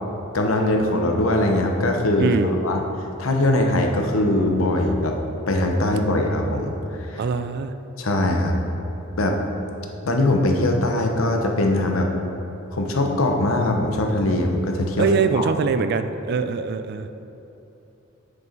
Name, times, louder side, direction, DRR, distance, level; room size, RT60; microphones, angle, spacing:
voice 1, 0.3-2.3 2.6-2.8 3.2-5.2 5.5-6.7 7.0-7.2 8.0-8.6 9.2-9.4 10.0-12.1 12.7-15.1 15.4-15.5, left 1 dB, 75° left, 2 dB, 0.9 m, -21 dB
voice 2, 2.2-2.5 7.2-7.7 15.0-17.1, right 5 dB, 50° right, 10 dB, 0.4 m, -23 dB
7.8 x 6.3 x 4.5 m, 3.0 s
head